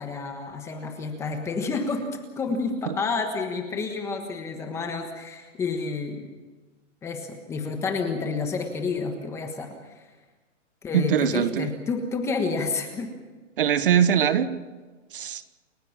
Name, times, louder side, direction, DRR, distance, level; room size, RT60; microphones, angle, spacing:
voice 1, 0.0-6.2 7.0-10.0 10.8-13.1, left 4 dB, 5° left, 5 dB, 1.3 m, -30 dB
voice 2, 10.9-11.7 13.6-14.5 15.1-15.4, right 9 dB, 45° right, 13 dB, 1.3 m, -22 dB
29.5 x 15.5 x 7.2 m, 1.3 s
hypercardioid pair, 170°, 38 cm